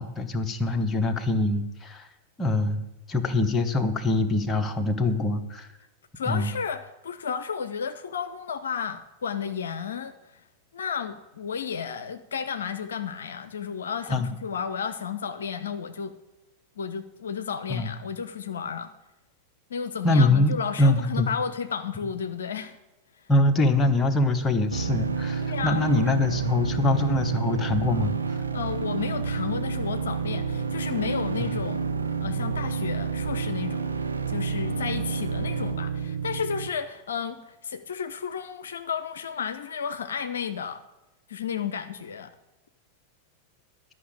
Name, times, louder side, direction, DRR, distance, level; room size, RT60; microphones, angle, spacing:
voice 1, 0.0-2.1 2.4-2.8 3.1-5.7 6.3-6.5 14.1-14.3 17.7-17.9 20.0-21.3 23.3-28.1, left 2 dB, 15° left, 5 dB, 1.1 m, -24 dB
voice 2, 6.2-10.4 10.7-16.2 16.8-18.9 19.7-22.8 23.2-23.3 25.4-25.8 28.5-31.8 32.2-33.9 34.3-40.8 41.3-42.3, left 7 dB, 65° left, 10 dB, 0.6 m, -32 dB
sound 1, 24.7-36.7, right 5 dB, 75° right, 0.7 m, -29 dB
11.5 x 6.0 x 8.6 m, 0.99 s
figure-of-eight pair, 90°, 0 cm